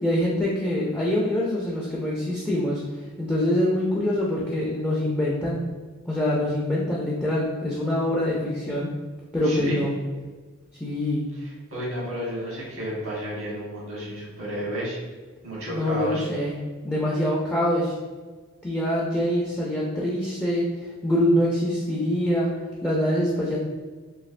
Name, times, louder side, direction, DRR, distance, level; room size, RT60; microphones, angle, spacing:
voice 1, 0.0-2.8 3.2-5.6 6.1-8.9 9.3-9.9 10.8-11.2 15.7-16.5 16.8-17.9 18.6-20.6 21.0-22.5 22.8-23.6, left 1 dB, 10° left, -6 dB, 0.4 m, -24 dB
voice 2, 9.4-9.9 11.4-15.0 15.4-16.3, equal, 80° right, -6 dB, 1.3 m, -31 dB
3.1 x 2.7 x 2.5 m, 1.4 s
head